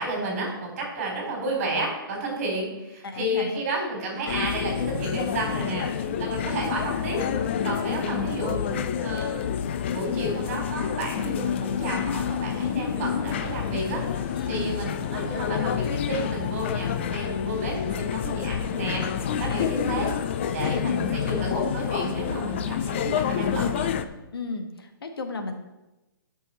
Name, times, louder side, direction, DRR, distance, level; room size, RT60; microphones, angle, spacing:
voice 1, 0.0-20.1 20.5-23.9, right 1 dB, 35° right, -1 dB, 3.6 m, -32 dB
voice 2, 3.0-3.5 14.3-14.8 19.4-19.7 24.3-25.5, left 3 dB, 85° left, 5 dB, 1.4 m, -33 dB
sound 1, 4.3-24.1, left 8 dB, 30° left, 0.4 m, -28 dB
11.5 x 5.6 x 4.3 m, 1.0 s
hypercardioid pair, 160°, 12 cm